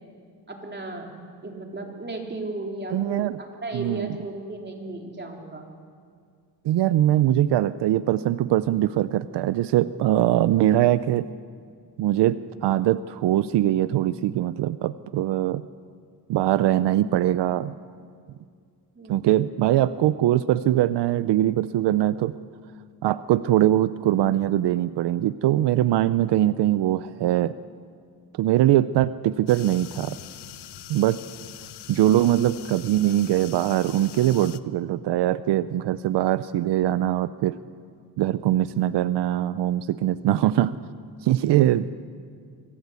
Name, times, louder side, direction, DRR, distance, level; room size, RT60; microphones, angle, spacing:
voice 1, 0.5-1.1 1.4-5.6 19.0-19.3, right 2 dB, 25° right, 1 dB, 3.9 m, -35 dB
voice 2, 2.9-3.4 3.7-4.2 6.6-11.3 12.0-15.6 16.3-17.7 19.1-22.3 23.0-27.5 28.3-30.2 30.9-31.2 31.9-37.6 38.2-40.8 41.2-41.9, right 13 dB, 85° right, 15 dB, 0.6 m, -22 dB
sound 1, 29.5-34.6, left 12 dB, 75° left, 0.9 m, -43 dB
25.0 x 17.5 x 8.3 m, 2.2 s
cardioid pair, 100°, 40 cm